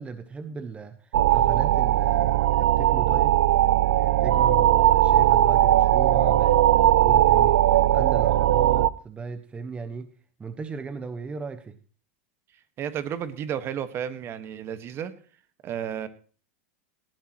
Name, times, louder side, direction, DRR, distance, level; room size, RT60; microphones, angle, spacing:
voice 1, 0.0-3.4 4.0-10.1 10.4-11.8, right 4 dB, 15° right, 10 dB, 1.2 m, -36 dB
sound 1, 1.1-8.9, right 12 dB, 80° right, 0.7 m, -19 dB
voice 2, 12.8-15.1 15.6-16.1, right 9 dB, 35° right, 12 dB, 1.6 m, -32 dB
18.5 x 15.5 x 3.1 m, 0.41 s
hypercardioid pair, 110°, 7 cm